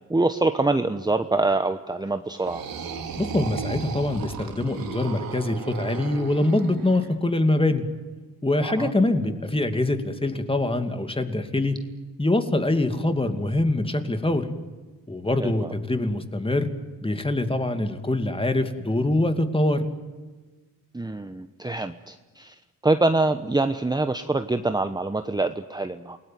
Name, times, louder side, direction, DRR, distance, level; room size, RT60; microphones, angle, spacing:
voice 1, 0.1-2.6 8.6-8.9 15.4-15.7 20.9-26.2, right 2 dB, 10° right, 9 dB, 1.1 m, -25 dB
sound 1, 2.3-7.1, right 6 dB, 80° right, 3.2 m, -35 dB
voice 2, 3.2-7.8 8.4-11.8 12.2-14.5 15.1-16.7 17.0-19.9, left 2 dB, 15° left, 8 dB, 2.6 m, -24 dB
28.5 x 19.0 x 9.4 m, 1.3 s
cardioid pair, 95°, 35 cm